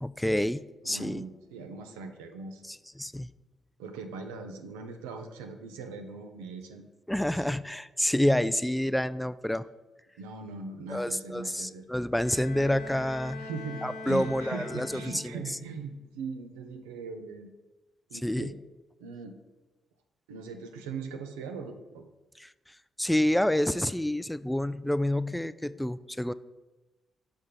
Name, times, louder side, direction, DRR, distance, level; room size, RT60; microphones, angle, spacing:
voice 1, 0.0-1.2 2.7-3.3 7.1-9.7 10.9-13.4 13.8-15.4 18.1-18.5 22.4-22.5 23.0-26.3, left 1 dB, 5° left, 15 dB, 0.3 m, -28 dB
voice 2, 0.8-2.6 3.8-6.8 7.3-7.5 10.2-11.9 13.4-17.5 18.1-18.5 19.0-19.4 20.3-22.1, right 4 dB, 85° right, 5 dB, 0.6 m, -40 dB
Bowed string instrument, 12.1-15.6, left 3 dB, 70° left, 1.0 m, -42 dB
6.5 x 3.4 x 5.7 m, 1.1 s
hypercardioid pair, 45°, 0 cm